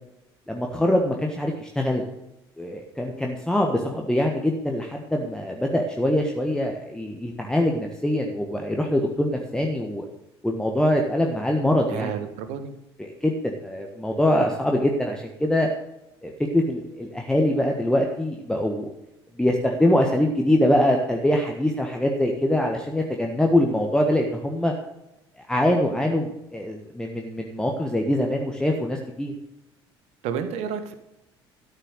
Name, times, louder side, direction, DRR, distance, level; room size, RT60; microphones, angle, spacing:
voice 1, 0.5-2.0 2.6-10.0 10.4-12.1 13.0-15.7 16.2-18.9 19.4-24.7 25.5-29.3, left 1 dB, 5° left, 1 dB, 1.4 m, -23 dB
voice 2, 11.9-12.7 30.2-30.9, right 7 dB, 55° right, 10 dB, 1.5 m, -30 dB
13.0 x 6.9 x 6.6 m, 0.91 s
figure-of-eight pair, 55°, 13 cm